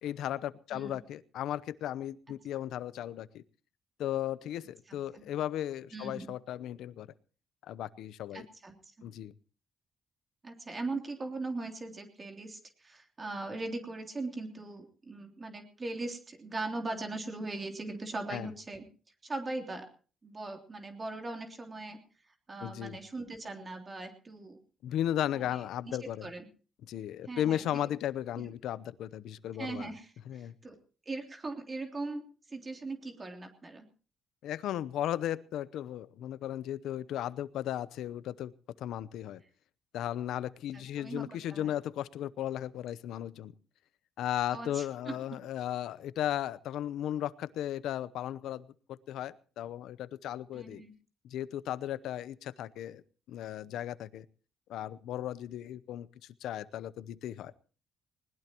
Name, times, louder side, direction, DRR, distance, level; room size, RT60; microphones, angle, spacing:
voice 1, 0.0-3.4 4.0-7.1 7.7-8.5 9.0-9.3 18.3-18.5 22.6-23.0 24.8-26.3 26.9-29.9 30.3-30.5 34.4-38.5 38.8-39.4 39.9-43.5 44.2-48.7 49.1-50.8 51.2-53.0 53.3-54.2 54.7-56.1 56.4-57.5, left 11 dB, 80° left, 17 dB, 0.8 m, -35 dB
voice 2, 5.9-6.3 8.3-8.7 10.4-18.9 19.2-19.9 20.2-22.0 22.5-24.6 25.8-26.5 27.2-27.8 28.4-28.5 29.6-30.1 30.4-30.7 31.0-32.2 32.5-33.9 40.7-41.8 44.5-45.2 50.5-50.9, right 2 dB, 30° right, 4 dB, 3.2 m, -40 dB
20.0 x 20.0 x 3.0 m, 0.39 s
cardioid pair, 90°, 0 cm